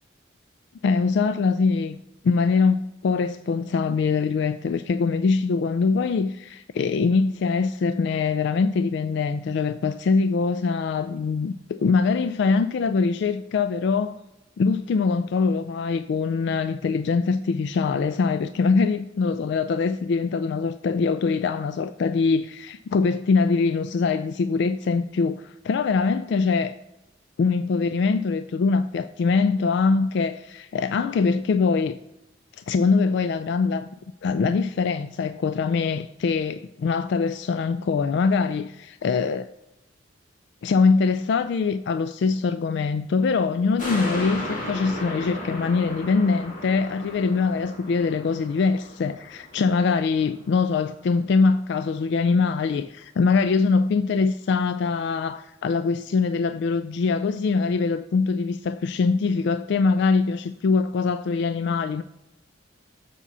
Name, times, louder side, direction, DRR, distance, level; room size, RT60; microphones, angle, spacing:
voice 1, 0.8-14.2 14.6-26.8 27.4-32.0 32.7-33.9 34.2-39.4 40.6-62.0, left 4 dB, 65° left, 0.3 m, -23 dB
sound 1, 43.8-50.4 50.9-51.0, left 1 dB, 45° left, 2.3 m, -35 dB
7.4 x 6.9 x 5.4 m
head